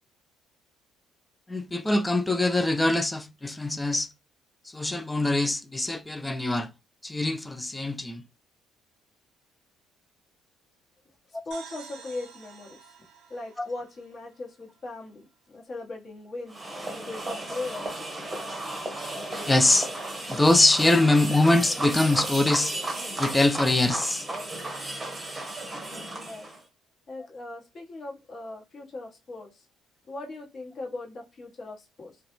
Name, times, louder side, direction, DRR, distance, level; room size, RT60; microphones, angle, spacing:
voice 1, 1.5-4.1 4.7-6.7 7.0-8.2 13.6-13.7 19.5-19.9 20.3-22.7 23.2-24.3, left 2 dB, 10° left, 0.3 m, -23 dB
voice 2, 11.0-12.9 13.3-17.9 26.2-26.5 27.1-29.6 30.0-32.2, left 2 dB, 45° left, 1.0 m, -39 dB
sound 1, 11.5-15.1, right 7 dB, 70° right, 0.7 m, -49 dB
sound 2, 16.5-26.6, right 1 dB, 20° right, 0.8 m, -34 dB
2.3 x 2.1 x 2.9 m
supercardioid pair, 80°, 0 cm